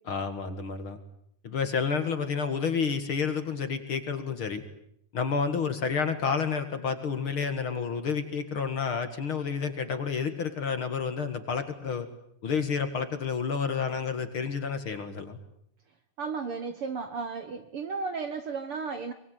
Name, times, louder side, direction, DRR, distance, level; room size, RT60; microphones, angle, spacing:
voice 1, 0.0-1.0 1.4-4.6 5.1-12.1 12.4-15.4, left 6 dB, 45° left, 9 dB, 2.4 m, -30 dB
voice 2, 16.2-19.1, right 5 dB, 55° right, 9 dB, 1.7 m, -34 dB
24.5 x 22.0 x 9.3 m, 0.71 s
omnidirectional pair, 3.7 m